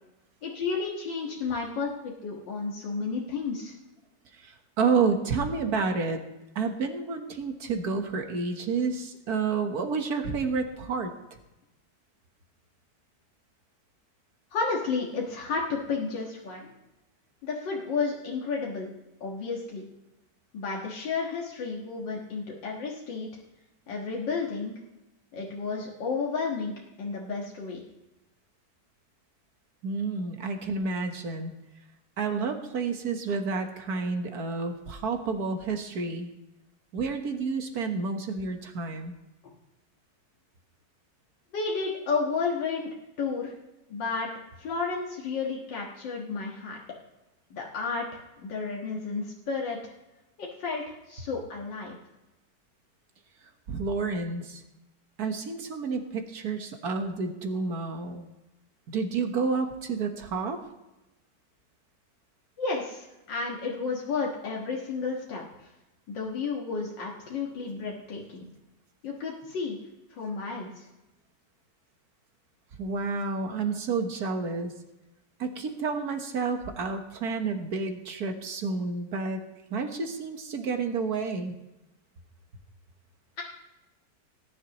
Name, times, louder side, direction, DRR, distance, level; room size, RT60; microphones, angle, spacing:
voice 1, 0.4-3.7 14.5-16.7 17.4-18.9 19.2-19.8 20.5-23.3 23.9-24.7 25.3-26.7 27.0-27.8 41.5-42.9 43.2-43.5 43.9-44.3 44.6-46.8 47.5-49.8 50.4-52.0 62.6-65.4 66.1-68.4 69.0-69.8 70.1-70.9, left 4 dB, 90° left, -3 dB, 2.3 m, -32 dB
voice 2, 4.8-6.2 6.5-11.1 29.8-31.5 32.2-36.3 36.9-39.1 53.7-54.6 55.2-58.3 58.9-60.6 72.8-74.7 75.4-79.4 79.7-81.5, right 4 dB, 60° right, 6 dB, 1.7 m, -30 dB
18.0 x 10.5 x 3.0 m, 0.97 s
omnidirectional pair, 1.9 m